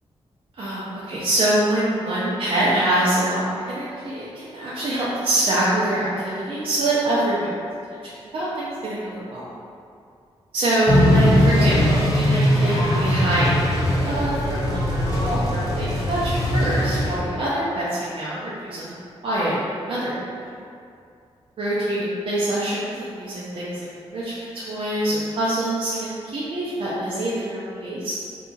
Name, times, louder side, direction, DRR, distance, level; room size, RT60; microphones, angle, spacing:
voice 1, 0.6-7.5 8.0-9.4 10.5-11.8 12.1-13.7 14.0-18.9 19.2-20.5 21.6-23.9 24.1-28.1, right 1 dB, 55° right, -9 dB, 0.6 m, -25 dB
sound 1, 10.9-17.2, equal, 35° left, 0.7 m, -20 dB
2.7 x 2.4 x 3.9 m, 2.4 s
cardioid pair, 95°, 11 cm